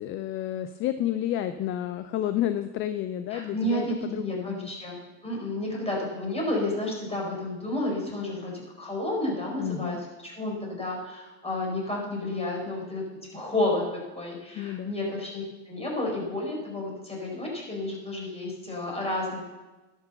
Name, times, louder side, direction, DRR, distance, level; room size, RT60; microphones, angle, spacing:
voice 1, 0.0-4.7 9.6-10.0 14.5-14.9, left 11 dB, 30° left, 11 dB, 0.4 m, -30 dB
voice 2, 3.3-10.0 10.2-13.0 13.3-19.4, left 1 dB, 10° left, -2 dB, 4.5 m, -31 dB
11.0 x 7.0 x 6.8 m, 1.2 s
hypercardioid pair, 95°, 49 cm